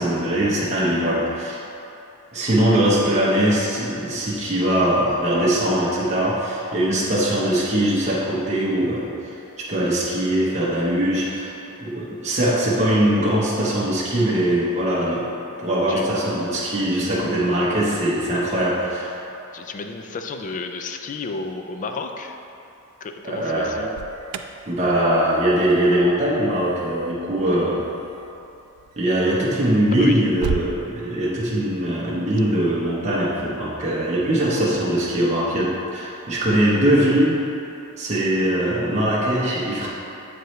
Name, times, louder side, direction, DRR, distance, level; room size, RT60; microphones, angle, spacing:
voice 1, 0.0-1.6 2.3-9.1 9.6-15.3 15.6-19.2 23.2-23.8 24.7-27.9 29.0-37.4 38.0-39.9, right 1 dB, 30° right, -7 dB, 0.9 m, -21 dB
voice 2, 19.5-22.4 23.0-23.9 29.9-30.2, left 3 dB, 35° left, 5 dB, 0.4 m, -32 dB
Alarm, 23.9-30.7, right 6 dB, 70° right, 0.3 m, -36 dB
7.8 x 4.6 x 3.1 m, 2.8 s
head